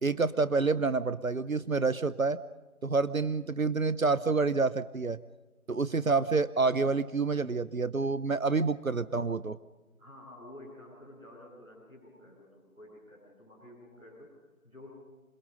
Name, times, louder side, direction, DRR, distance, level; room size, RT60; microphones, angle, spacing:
voice 1, 0.0-2.4 2.8-5.2 5.7-9.6, right 4 dB, 70° right, 16 dB, 0.9 m, -28 dB
voice 2, 10.0-14.9, left 1 dB, 5° right, -12 dB, 5.4 m, -51 dB
27.5 x 21.5 x 5.4 m, 1.2 s
figure-of-eight pair, 170°, 43 cm